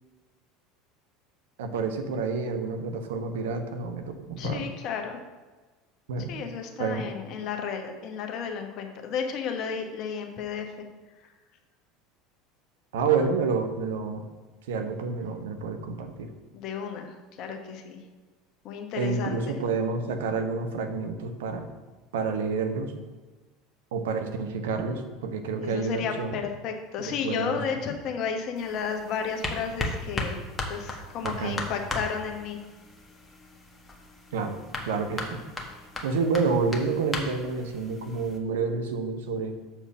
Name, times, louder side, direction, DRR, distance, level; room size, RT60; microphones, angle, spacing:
voice 1, 1.6-4.7 6.1-6.3 6.8-7.1 12.9-14.2 14.7-16.3 19.0-21.7 22.1-22.9 23.9-26.4 27.0-27.6 31.2-31.6 34.3-35.4 36.0-39.6, right 4 dB, 70° right, 6 dB, 0.8 m, -29 dB
voice 2, 4.4-5.2 6.3-10.9 16.5-18.0 18.6-19.5 25.6-30.4 30.7-32.6, left 6 dB, 50° left, 4 dB, 1.1 m, -33 dB
sound 1, 28.6-38.4, left 2 dB, 20° left, 1.4 m, -37 dB
7.0 x 4.4 x 5.9 m, 1.3 s
figure-of-eight pair, 75°, 0 cm